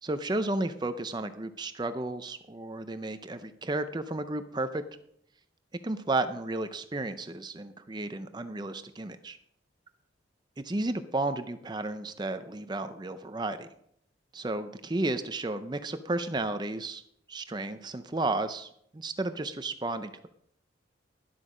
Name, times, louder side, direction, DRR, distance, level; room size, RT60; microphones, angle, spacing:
voice 1, 0.0-4.8 5.8-9.4 10.6-13.7 14.3-17.0 17.3-20.3, right 2 dB, 20° right, 10 dB, 0.5 m, -33 dB
12.0 x 8.1 x 5.0 m, 0.70 s
head